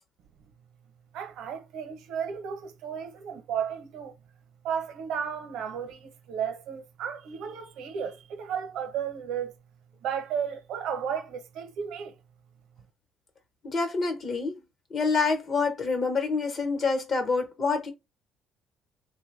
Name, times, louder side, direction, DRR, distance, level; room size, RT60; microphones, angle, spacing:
voice 1, 1.1-4.1 4.6-9.5 10.0-12.2, right 7 dB, 75° right, 0.8 m, -33 dB
voice 2, 13.6-14.5 14.9-17.9, left 4 dB, 40° left, 1.0 m, -27 dB
3.3 x 2.2 x 3.2 m
cardioid pair, 120°, 0 cm